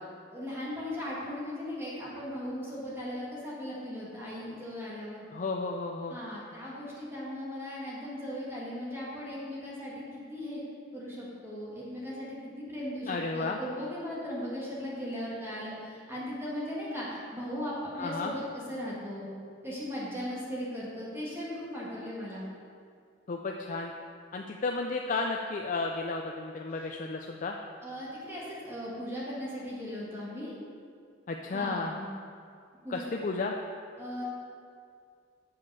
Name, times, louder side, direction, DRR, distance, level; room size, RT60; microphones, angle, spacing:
voice 1, 0.3-5.2 6.1-10.6 10.9-18.4 18.7-19.3 19.6-22.5 26.7-26.9 27.8-30.5 31.5-32.1 32.8-33.1 34.0-34.2, equal, 15° right, -7 dB, 1.9 m, -38 dB
voice 2, 5.3-6.2 13.1-13.6 18.0-18.3 23.3-23.9 24.3-27.6 31.3-31.9 32.9-33.6, left 3 dB, 45° left, 2 dB, 0.4 m, -33 dB
7.6 x 6.3 x 5.6 m, 2.2 s
head